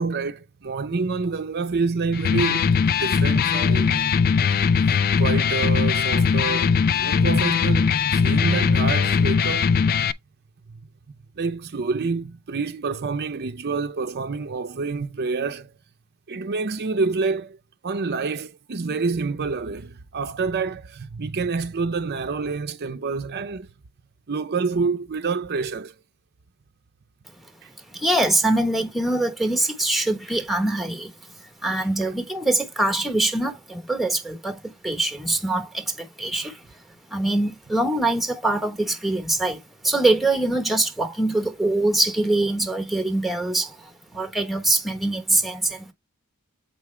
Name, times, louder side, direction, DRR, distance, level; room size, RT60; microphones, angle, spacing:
voice 1, 0.0-4.2 4.5-9.8 10.7-10.8 11.4-15.7 16.3-23.7 24.3-26.0 27.6-27.7 32.0-32.1, right 4 dB, 45° right, 0.6 m, -28 dB
Electric guitar, 2.1-10.1, left 6 dB, 40° left, 0.4 m, -20 dB
voice 2, 27.9-31.1 31.6-36.6 37.1-45.9, right 2 dB, ahead, 1.1 m, -23 dB
7.5 x 4.9 x 3.2 m
head